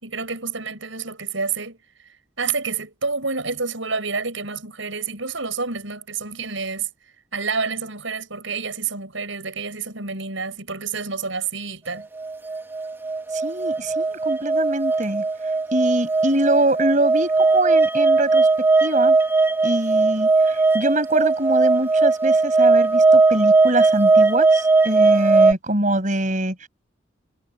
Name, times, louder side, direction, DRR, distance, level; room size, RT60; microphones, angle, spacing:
voice 1, 0.0-1.8 2.4-6.9 7.3-12.1, right 5 dB, 75° right, 6.6 m, -28 dB
sound 1, 12.2-25.5, right 3 dB, 10° right, 2.3 m, -18 dB
voice 2, 13.3-15.2 15.7-18.5 18.8-19.2 19.6-26.7, right 1 dB, 40° right, 6.9 m, -23 dB
head